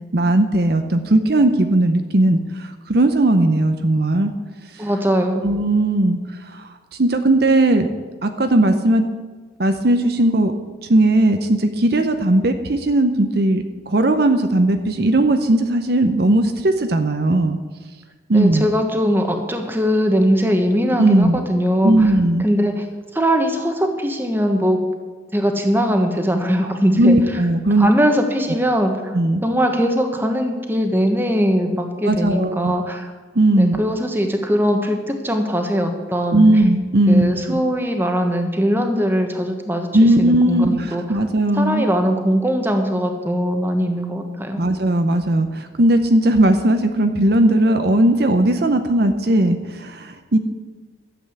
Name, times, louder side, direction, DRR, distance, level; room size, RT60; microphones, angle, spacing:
voice 1, 0.1-4.3 5.4-6.2 6.5-6.7 7.0-7.9 8.2-9.0 9.6-10.5 10.9-17.6 18.3-18.7 21.0-21.4 21.8-22.5 27.0-27.9 29.1-29.4 32.0-32.7 33.3-33.8 36.3-37.6 39.9-41.9 44.6-50.4, right 1 dB, 55° right, 7 dB, 0.7 m, -17 dB
voice 2, 4.8-5.4 18.3-22.1 22.4-22.8 23.1-24.8 25.3-27.2 27.8-33.1 33.6-36.5 37.1-39.9 40.2-41.2 41.5-44.6, equal, 10° right, 4 dB, 1.2 m, -20 dB
12.5 x 7.9 x 7.9 m, 1.4 s
head